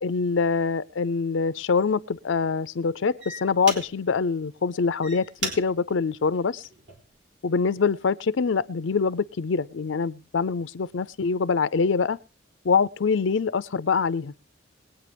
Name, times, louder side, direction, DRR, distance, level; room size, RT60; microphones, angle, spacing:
voice 1, 0.0-6.7 7.4-12.2 12.6-14.3, left 5 dB, 85° left, 0.5 m, -24 dB
sound 1, 1.0-1.2 1.8-2.1 2.8-2.9 3.2-4.2 4.8-7.2 7.7-8.1, right 3 dB, 70° right, 3.7 m, -37 dB
21.0 x 9.0 x 3.4 m
head